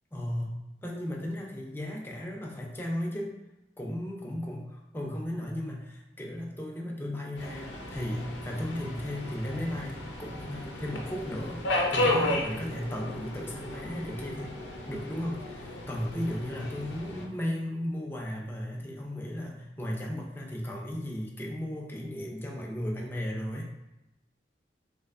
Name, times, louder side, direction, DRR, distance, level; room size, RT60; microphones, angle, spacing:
voice 1, 0.1-3.3 3.8-4.6 4.9-14.6 14.9-23.7, left 1 dB, 10° left, -2 dB, 0.5 m, -35 dB
Subway metro underground, 7.4-17.2, left 1 dB, 70° left, 0.6 m, -34 dB
3.2 x 3.0 x 2.4 m, 0.96 s
head